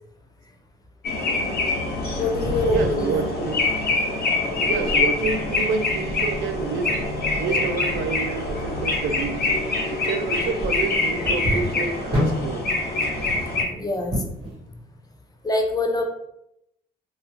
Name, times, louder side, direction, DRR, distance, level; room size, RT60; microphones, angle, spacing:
sound 1, 1.0-13.6, left 2 dB, 50° left, 0.9 m, -25 dB
voice 1, 2.1-3.2 13.6-14.2 15.4-16.1, left 2 dB, 20° left, 3 dB, 0.5 m, -25 dB
voice 2, 2.7-3.5 4.5-7.0 7.4-9.5 9.9-12.7, right 4 dB, 80° right, 7 dB, 0.4 m, -28 dB
sound 2, 2.9-14.6, equal, 25° right, 1.1 m, -33 dB
2.3 x 2.2 x 3.0 m, 0.79 s
cardioid pair, 90°, 20 cm